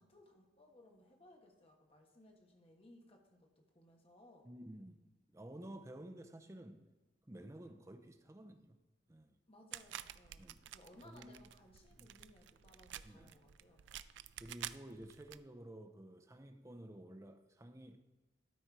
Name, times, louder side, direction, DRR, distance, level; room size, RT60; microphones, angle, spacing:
voice 1, 0.0-4.5 9.5-13.9, left 1 dB, 30° left, 2 dB, 1.3 m, -63 dB
voice 2, 4.4-5.0 5.3-6.9 7.3-8.8 9.1-9.4 10.4-10.6 11.0-11.5 11.9-12.1 13.0-13.3 14.4-18.0, right 1 dB, 15° right, 8 dB, 0.6 m, -52 dB
sound 1, 9.7-15.4, right 12 dB, 80° right, 0.3 m, -50 dB
12.5 x 4.3 x 4.7 m, 1.2 s
head